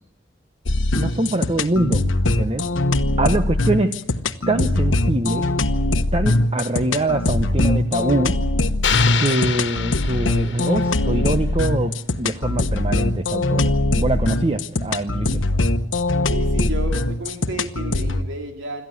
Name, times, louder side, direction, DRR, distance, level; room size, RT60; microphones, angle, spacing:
sound 1, 0.7-18.2, left 2 dB, 85° left, 1.1 m, -21 dB
voice 1, 0.9-2.7 3.2-3.9 4.5-5.5 6.1-8.4 9.2-15.4, right 2 dB, 30° right, 8 dB, 0.9 m, -24 dB
sound 2, 8.8-11.0, left 8 dB, 65° left, 1.5 m, -25 dB
voice 2, 16.3-18.9, right 1 dB, 85° right, 5 dB, 2.8 m, -32 dB
26.0 x 14.0 x 9.5 m, 0.74 s
head